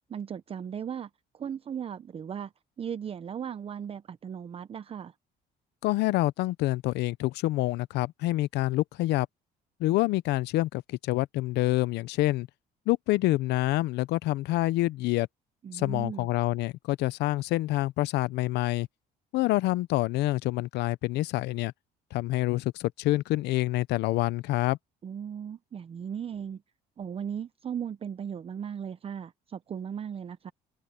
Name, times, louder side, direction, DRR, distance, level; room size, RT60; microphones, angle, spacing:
voice 1, 0.1-2.5 2.8-5.1 15.6-16.3 25.0-26.6 27.0-30.5, right 8 dB, 35° right, 0.7 m, -37 dB
voice 2, 5.8-9.3 9.8-12.5 12.9-15.3 15.7-18.9 19.3-21.7 22.1-24.8, left 18 dB, 85° left, 0.7 m, -27 dB
cardioid pair, 110°, 17 cm